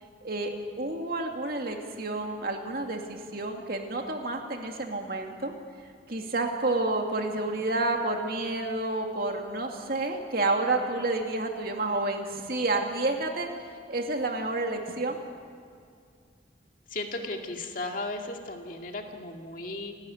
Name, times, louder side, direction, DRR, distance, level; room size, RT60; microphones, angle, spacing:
voice 1, 0.2-0.5 0.8-5.5 6.1-13.5 13.9-15.2, right 2 dB, 55° right, 3 dB, 2.4 m, -29 dB
voice 2, 16.9-19.9, left 2 dB, 45° left, 3 dB, 2.2 m, -35 dB
30.0 x 12.5 x 9.4 m, 2.2 s
head